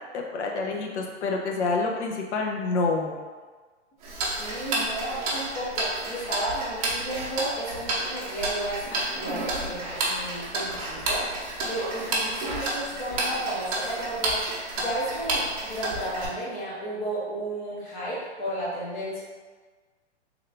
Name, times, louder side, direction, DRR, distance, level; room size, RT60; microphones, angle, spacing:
voice 1, 0.0-3.2, left 3 dB, 70° left, 1 dB, 0.7 m, -28 dB
Tick-tock, 4.0-16.3, right 2 dB, 30° right, 0.7 m, -30 dB
voice 2, 4.4-14.4 14.8-19.2, right 1 dB, 15° left, -8 dB, 0.5 m, -33 dB
3.5 x 2.3 x 3.3 m, 1.4 s
hypercardioid pair, 150°, 36 cm